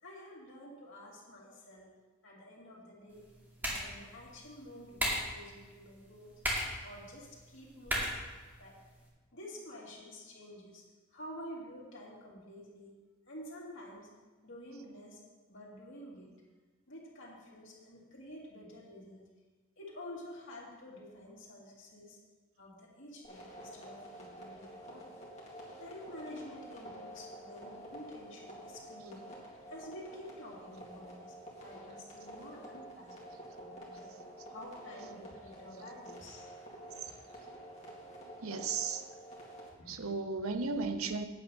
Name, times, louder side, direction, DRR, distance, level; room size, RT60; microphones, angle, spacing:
voice 1, 0.0-1.9 2.2-3.3 3.6-6.4 6.8-8.1 8.6-8.8 9.3-10.9 11.1-13.0 13.3-14.1 14.4-15.2 15.5-16.3 16.9-19.2 19.8-22.2 22.6-25.2 25.8-29.3 29.7-31.3 31.6-33.1 33.6-34.1 34.5-36.5 37.1-37.2 39.8-40.1, left 1 dB, 65° left, -3 dB, 2.6 m, -49 dB
sound 1, 3.1-9.1, equal, 10° right, 2.4 m, -39 dB
sound 2, 23.2-39.7, right 1 dB, 35° left, 2.2 m, -49 dB
voice 2, 38.4-39.0 39.9-41.3, right 4 dB, 90° right, 8 dB, 0.8 m, -35 dB
9.1 x 8.1 x 5.4 m, 1.3 s
head